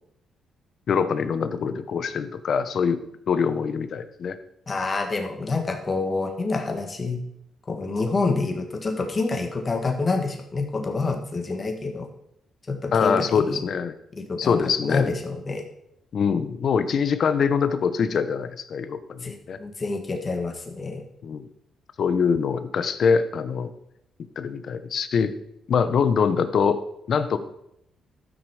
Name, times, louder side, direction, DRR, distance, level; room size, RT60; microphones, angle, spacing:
voice 1, 0.9-3.0 3.3-4.4 12.9-14.0 14.4-15.1 16.1-19.6 21.2-21.5 22.0-23.7 24.4-25.3 25.7-26.8 27.1-27.4, left 6 dB, 60° left, 11 dB, 1.0 m, -24 dB
voice 2, 4.7-7.2 7.7-12.1 12.7-13.6 14.2-15.6 19.2-21.0, left 3 dB, 35° left, 4 dB, 2.2 m, -27 dB
13.5 x 6.3 x 5.0 m, 0.77 s
cardioid pair, 75°, 0 cm